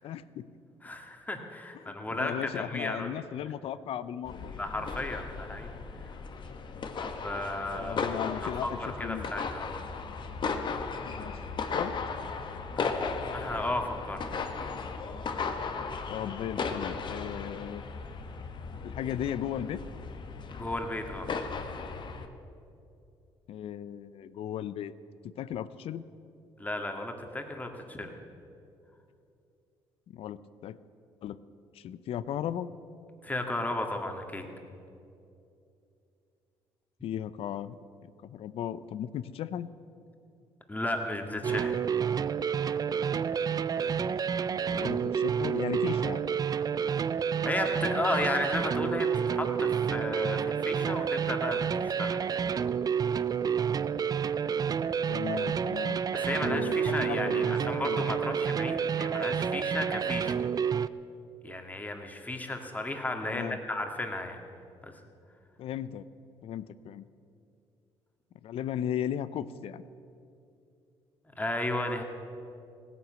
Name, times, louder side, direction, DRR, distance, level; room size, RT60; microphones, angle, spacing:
voice 1, 0.0-0.5 1.8-4.5 7.7-9.3 11.0-12.0 16.1-17.8 18.8-19.8 23.5-24.9 25.2-26.0 30.1-30.8 31.2-31.4 31.7-32.7 37.0-37.8 38.2-39.7 44.5-46.3 55.1-56.0 56.4-58.2 63.2-63.6 65.6-66.0 66.4-67.1 68.4-69.8, left 10 dB, 65° left, 15 dB, 0.6 m, -36 dB
voice 2, 0.8-3.1 4.6-5.7 6.0-6.1 7.0-8.1 8.4-9.7 12.8-14.2 20.6-21.3 26.6-28.1 33.2-34.4 40.7-41.8 47.4-52.3 56.1-60.4 61.4-64.4 64.8-64.9 71.4-72.0, left 1 dB, 15° left, 4 dB, 1.9 m, -34 dB
sound 1, 4.3-22.3, left 4 dB, 50° left, 1.2 m, -36 dB
sound 2, 41.4-60.9, right 7 dB, 40° right, 0.4 m, -29 dB
16.5 x 9.9 x 7.6 m, 2.6 s
cardioid pair, 80°, 10 cm